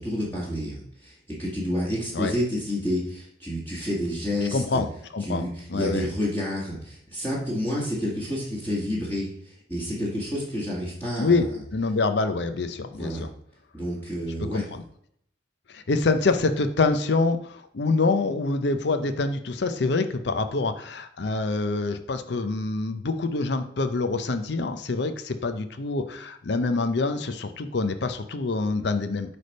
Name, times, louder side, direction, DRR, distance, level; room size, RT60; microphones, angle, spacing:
voice 1, 0.0-4.8 5.2-11.6 13.0-13.2 13.7-14.6, equal, 10° left, -6 dB, 1.6 m, -29 dB
voice 2, 4.5-4.9 5.1-6.1 11.2-11.5 11.7-13.3 14.5-14.8 15.7-29.4, left 3 dB, 60° left, 8 dB, 0.6 m, -26 dB
8.2 x 3.4 x 5.3 m, 0.68 s
head